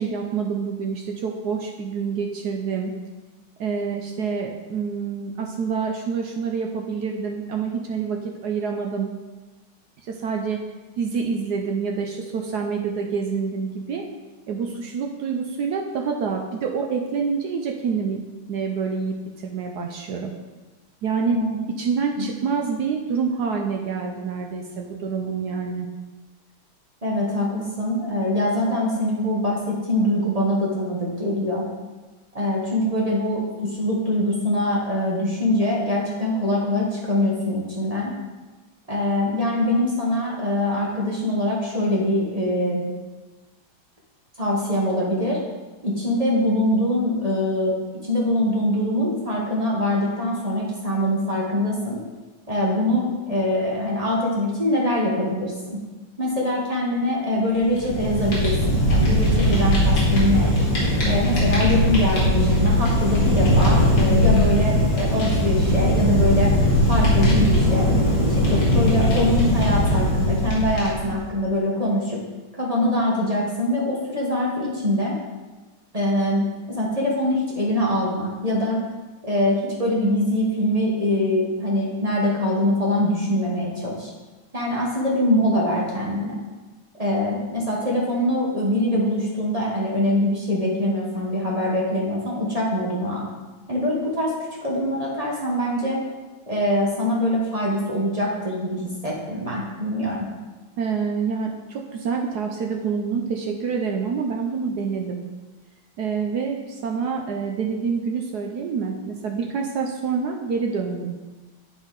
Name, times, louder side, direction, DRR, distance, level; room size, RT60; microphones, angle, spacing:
voice 1, 0.0-2.9 3.6-9.1 10.0-10.6 11.0-14.1 14.5-18.2 18.5-20.3 21.0-21.4 21.8-25.9 100.8-105.2 106.0-111.1, right 5 dB, 80° right, 2 dB, 0.9 m, -27 dB
voice 2, 27.0-31.6 32.3-38.2 38.9-42.9 44.4-45.4 45.8-47.7 48.0-52.0 52.5-55.8 56.2-60.5 61.0-66.5 66.9-67.9 68.3-72.2 72.5-75.2 75.9-78.8 79.2-84.1 84.5-86.4 87.0-93.3 93.7-94.3 94.6-96.0 96.5-100.3, left 1 dB, 30° right, -4 dB, 0.7 m, -23 dB
Fire, 57.6-71.2, left 1 dB, 65° left, 2.6 m, -19 dB
10.5 x 4.1 x 3.9 m, 1.3 s
omnidirectional pair, 2.4 m